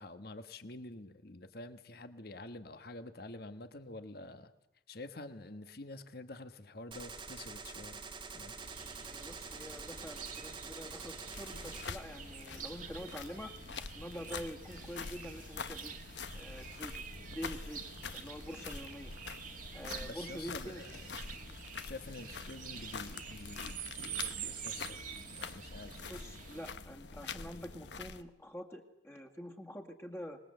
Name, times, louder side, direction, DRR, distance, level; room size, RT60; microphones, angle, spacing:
voice 1, 0.0-4.5 4.9-8.0 8.3-8.6 20.0-21.2 21.8-26.0, left 2 dB, 60° left, 10 dB, 1.4 m, -48 dB
Gunshot gunfire, 6.9-11.9, right 4 dB, 30° right, 1.4 m, -46 dB
sound 1, 8.6-26.7, right 7 dB, 50° right, 1.7 m, -47 dB
voice 2, 9.0-13.5 13.9-16.0 16.3-19.1 19.7-20.8 26.1-30.4, equal, 15° left, 2 dB, 2.0 m, -46 dB
sound 2, 11.3-28.2, left 5 dB, 75° left, 1.1 m, -46 dB
25.5 x 20.5 x 8.0 m, 0.85 s
head